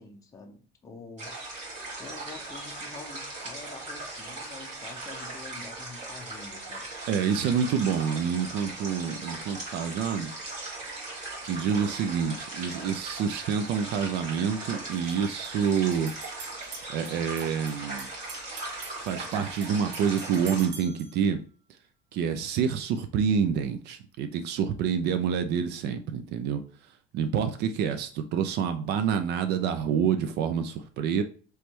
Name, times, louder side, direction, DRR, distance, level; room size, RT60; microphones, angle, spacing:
voice 1, 0.0-1.4 2.0-6.9, left 4 dB, 15° left, 0.6 m, -46 dB
sound 1, 1.2-20.7, right 2 dB, 35° right, 2.0 m, -39 dB
voice 2, 7.1-10.3 11.4-16.1 16.4-16.5 16.9-18.1 19.0-21.4 22.1-26.6 27.1-31.2, right 7 dB, 55° right, 0.5 m, -27 dB
sound 2, 14.9-21.2, right 4 dB, 90° right, 0.9 m, -46 dB
3.2 x 3.1 x 4.4 m
cardioid pair, 140°, 20 cm